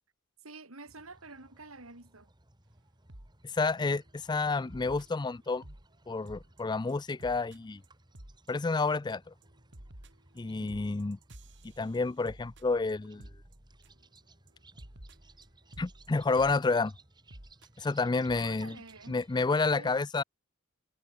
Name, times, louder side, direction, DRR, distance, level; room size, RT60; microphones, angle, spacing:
voice 1, 0.4-2.3 10.6-10.9 18.4-19.2 19.6-20.0, right 3 dB, 85° right, 4.3 m, -49 dB
sound 1, 0.8-19.7, right 2 dB, 20° right, 2.9 m, -61 dB
sound 2, 3.1-3.3 3.7-4.0 4.7-5.9 6.3-6.6 6.9-7.0 7.2-7.6 7.8-7.9 8.1-8.5 8.8-9.1 9.4-14.2 14.5-14.6 14.8-16.6 17.3-17.7 18.3-18.5 18.9-19.0 19.2-19.3, right 1 dB, 60° right, 3.9 m, -51 dB
voice 2, 3.5-5.6 6.1-7.8 8.5-9.3 10.4-11.2 11.8-13.3 15.8-16.9 17.8-18.8 19.1-20.2, left 3 dB, 20° left, 0.4 m, -29 dB
head